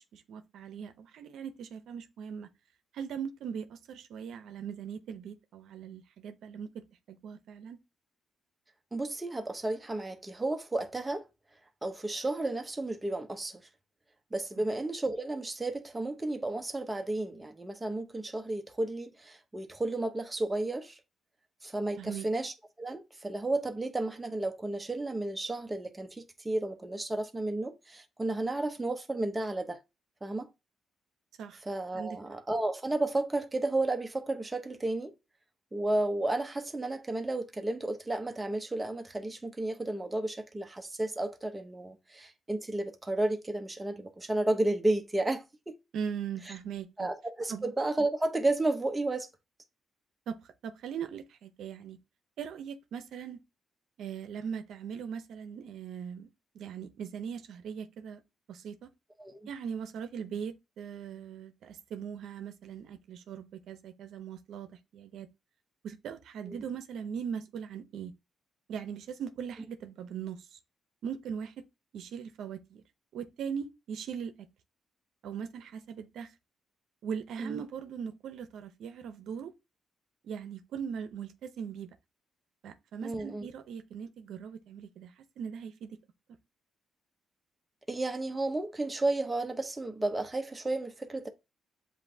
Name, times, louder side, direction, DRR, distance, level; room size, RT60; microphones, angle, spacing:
voice 1, 0.0-2.5 2.9-7.8 14.6-14.7 22.0-22.3 31.4-31.6 32.0-32.2 45.9-47.1 47.5-47.7 50.3-52.0 52.4-53.4 54.0-56.3 56.5-58.2 58.5-58.9 59.5-65.3 65.8-68.1 68.7-70.6 71.0-71.6 71.9-72.8 73.1-74.3 75.2-76.3 77.0-79.5 80.2-81.9 82.6-86.0, right 7 dB, 80° right, 0.6 m, -40 dB
voice 2, 8.9-11.2 11.8-13.7 14.3-21.0 21.6-29.8 30.2-30.5 31.6-35.1 35.7-45.8 47.0-49.3 59.2-59.5 66.5-66.6 77.4-77.6 83.0-83.5 87.9-91.3, right 2 dB, 15° right, 0.8 m, -32 dB
7.5 x 2.6 x 2.7 m
cardioid pair, 90°, 0 cm